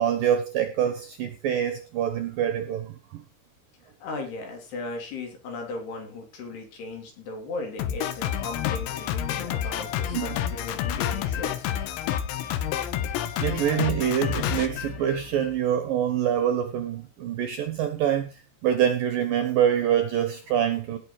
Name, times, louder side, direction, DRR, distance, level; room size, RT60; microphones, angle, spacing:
voice 1, 0.0-3.2 10.1-10.4 13.4-21.0, right 9 dB, 70° right, 2.2 m, -25 dB
voice 2, 4.0-11.7, left 3 dB, 60° left, 5.4 m, -37 dB
Drum kit, 7.8-15.6, left 10 dB, 80° left, 3.4 m, -29 dB
18.0 x 7.1 x 4.8 m
omnidirectional pair, 5.3 m